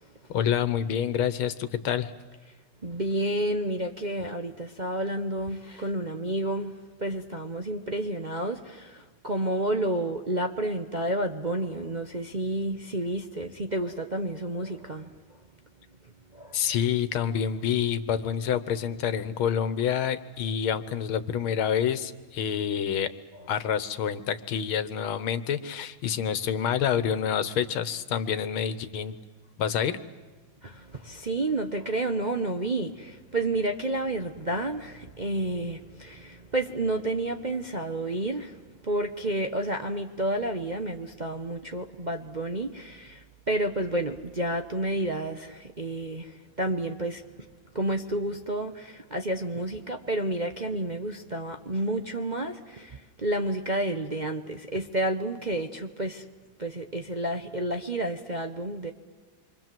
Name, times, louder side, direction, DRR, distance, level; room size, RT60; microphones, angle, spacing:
voice 1, 0.3-2.1 16.5-23.1 23.5-29.2 29.6-30.0, left 8 dB, 90° left, 2.0 m, -27 dB
voice 2, 2.8-15.1 16.3-16.7 23.3-23.4 30.6-47.5 47.7-56.2 56.6-58.9, right 1 dB, 35° right, 0.7 m, -30 dB
28.5 x 24.5 x 7.7 m
omnidirectional pair, 2.2 m